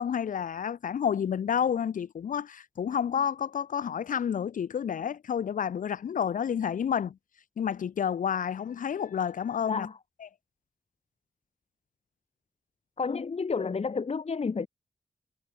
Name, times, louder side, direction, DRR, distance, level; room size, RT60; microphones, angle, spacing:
voice 1, 0.0-7.2 7.6-9.9 10.2-10.3, left 8 dB, 80° left, 3.3 m, -30 dB
voice 2, 13.0-14.7, left 5 dB, 50° left, 1.4 m, -30 dB
supercardioid pair, 40°, 14 cm